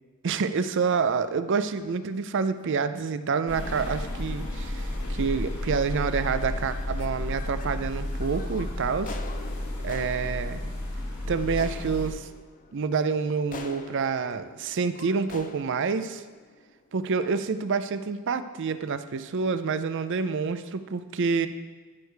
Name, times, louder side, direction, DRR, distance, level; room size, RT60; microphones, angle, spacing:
voice 1, 0.2-9.2 9.8-10.6 11.3-12.3 12.7-16.2 16.9-21.5, right 5 dB, 55° right, 12 dB, 0.5 m, -28 dB
sound 1, 1.7-2.0 2.6-2.8 3.5-3.8 4.0-4.1 4.5-4.9 5.4-5.8 6.0-7.7 8.1-17.3, left 4 dB, 35° left, 0.6 m, -47 dB
sound 2, 3.5-12.1, left 1 dB, 85° left, 1.9 m, -32 dB
14.0 x 6.4 x 3.3 m, 1.4 s
head